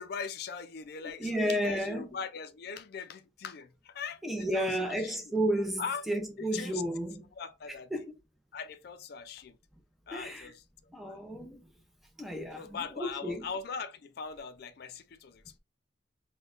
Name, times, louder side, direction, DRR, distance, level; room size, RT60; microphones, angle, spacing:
voice 1, 0.0-5.2 5.8-6.0 6.4-6.8 7.4-7.9 8.5-9.6 10.1-10.6 11.0-11.2 12.5-15.6, left 6 dB, 55° left, 0.4 m, -40 dB
voice 2, 1.2-2.1 4.2-7.2 7.9-8.0 10.1-10.5 10.9-11.6 12.2-13.5, right 1 dB, ahead, 0.5 m, -32 dB
4.4 x 2.2 x 2.5 m
head